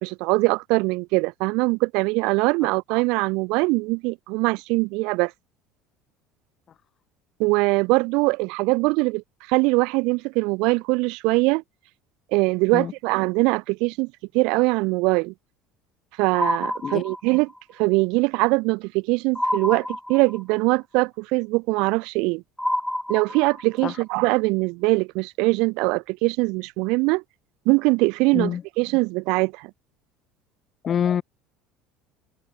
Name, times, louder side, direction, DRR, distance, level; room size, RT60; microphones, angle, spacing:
voice 1, 0.0-5.3 7.4-11.6 12.3-14.1 14.3-15.3 16.2-17.5 17.8-22.4 23.1-27.2 27.7-28.5 28.8-29.7, right 27 dB, 70° right, 0.9 m, -22 dB
sound 1, 16.3-17.6 19.4-20.6 22.6-23.8, left 1 dB, 5° left, 2.2 m, -28 dB
voice 2, 30.8-31.2, left 8 dB, 40° left, 1.2 m, -25 dB
open air
supercardioid pair, 90°, 0 cm